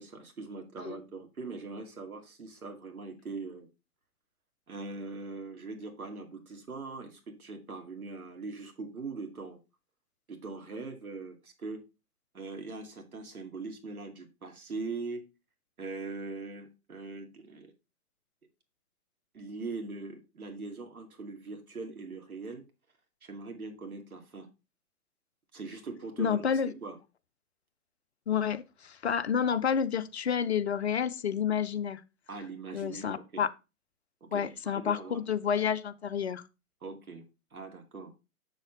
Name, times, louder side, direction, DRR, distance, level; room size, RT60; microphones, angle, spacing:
voice 1, 0.0-3.7 4.7-9.6 10.3-11.8 12.3-15.3 15.8-17.7 19.3-22.6 23.2-24.5 25.5-27.0 32.3-33.4 34.2-35.2 36.8-37.2 37.5-38.1, right 3 dB, 65° right, 2.5 m, -41 dB
voice 2, 26.2-26.7 28.3-32.0 32.7-33.5 34.3-36.4, left 7 dB, 45° left, 0.7 m, -29 dB
7.3 x 6.8 x 3.8 m
figure-of-eight pair, 130°, 46 cm